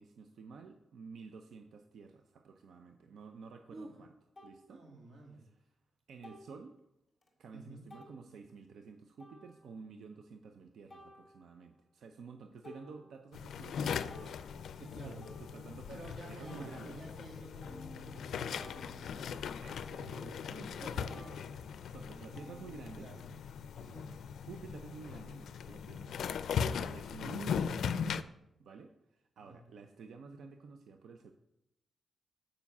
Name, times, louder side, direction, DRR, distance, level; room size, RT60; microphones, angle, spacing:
voice 1, 0.0-4.1 4.4-4.8 5.3-5.6 6.1-6.8 7.4-14.4 14.8-17.0 19.6-19.9 21.9-23.1 24.4-26.1 26.6-28.3 28.6-31.3, right 5 dB, 75° right, 6 dB, 0.6 m, -51 dB
sound 1, 4.4-4.6 6.2-6.6 7.2-7.3 7.9-8.2 9.2-9.8 10.9-11.7 12.2-12.3 12.6-13.5 13.8-16.0 16.5-20.8 21.1-23.4, left 1 dB, 15° left, 2.0 m, -56 dB
voice 2, 4.7-5.4 7.5-7.8 14.8-15.2 15.7-19.4 19.9-21.3 22.1-22.6 23.0-23.2 23.7-24.1 29.4-29.6, right 2 dB, 50° right, 0 dB, 2.2 m, -50 dB
sound 2, 13.3-28.2, left 7 dB, 80° left, 0.4 m, -39 dB
7.1 x 5.1 x 7.1 m, 0.85 s
wide cardioid pair, 165°, 0 cm